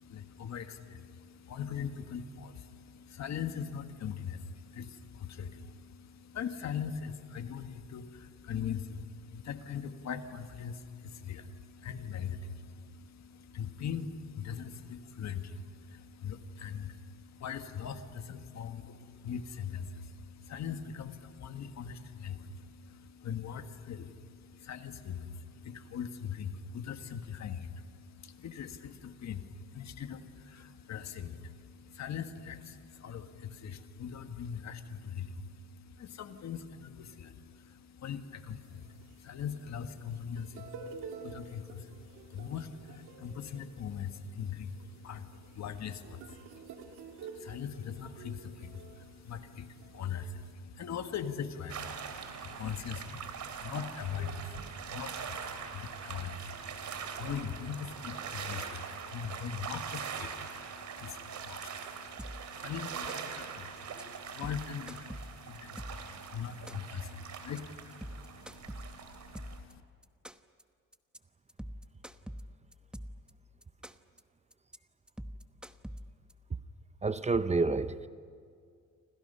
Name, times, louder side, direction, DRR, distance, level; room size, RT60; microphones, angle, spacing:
voice 1, 0.0-69.8, left 7 dB, 65° left, 1.7 m, -41 dB
sound 1, 38.6-50.5, right 5 dB, 90° right, 2.2 m, -51 dB
sound 2, 51.7-69.6, right 7 dB, 70° right, 3.1 m, -42 dB
sound 3, 62.2-62.6 62.9-63.4 63.8-64.0 64.3-66.1 66.4-67.0 67.3-67.6 67.9-69.7 70.0-70.6 70.9-71.2 71.5-73.3 73.6-74.2 74.5-74.8 75.1-76.3, equal, 5° right, 1.0 m, -44 dB
voice 2, 77.0-78.1, right 3 dB, 20° right, 0.9 m, -29 dB
29.0 x 25.5 x 5.6 m
cardioid pair, 90°, 30 cm